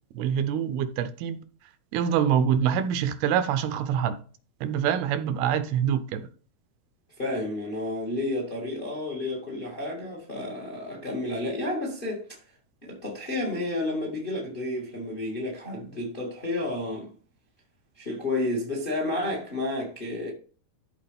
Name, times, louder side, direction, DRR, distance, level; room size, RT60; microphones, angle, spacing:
voice 1, 0.1-1.4 1.9-4.2 4.6-6.3, right 8 dB, 80° right, 2.5 m, -25 dB
voice 2, 7.2-12.4 12.8-17.1 18.0-20.3, left 2 dB, 25° left, 1.1 m, -31 dB
13.0 x 4.7 x 3.4 m
omnidirectional pair, 4.5 m